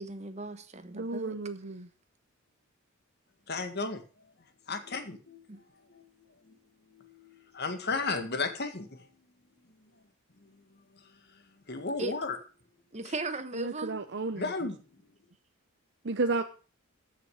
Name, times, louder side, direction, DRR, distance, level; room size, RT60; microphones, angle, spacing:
voice 1, 0.0-1.3 5.5-5.6 12.0-12.1 12.9-14.0, right 2 dB, 30° right, 1.2 m, -37 dB
voice 2, 0.9-1.9 13.5-14.5 16.0-16.4, right 3 dB, 55° right, 0.8 m, -32 dB
voice 3, 3.5-4.3 4.7-5.6 5.9-6.0 6.4-6.6 6.9-9.1 9.7-9.9 10.4-12.4 13.1-13.2 14.3-15.0, left 3 dB, 50° left, 1.8 m, -36 dB
13.5 x 6.8 x 6.4 m
head